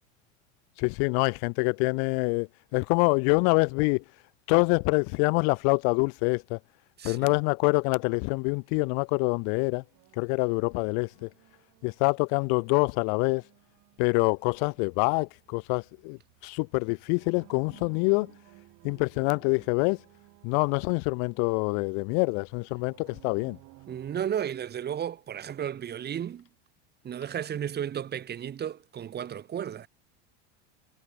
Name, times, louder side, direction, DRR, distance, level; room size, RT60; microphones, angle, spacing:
voice 1, 0.8-4.0 4.5-6.6 7.0-9.8 10.2-11.3 11.8-13.4 14.0-18.3 18.8-20.0 20.4-23.6, left 40 dB or more, 60° left, 0.7 m, -26 dB
sound 1, 3.4-3.5 4.3-5.5 6.3-6.4 7.1-7.7 8.5-8.7 9.6-9.7 10.3-11.5 13.2-13.3 14.1-14.8 15.2-15.3 17.6-18.6 20.6-21.2, left 17 dB, 85° left, 8.0 m, -59 dB
voice 2, 7.0-7.4 23.9-26.5 27.0-29.9, right 9 dB, 30° right, 3.5 m, -33 dB
sound 2, 7.8-24.3, right 19 dB, 55° right, 7.9 m, -58 dB
supercardioid pair, 125°, 32 cm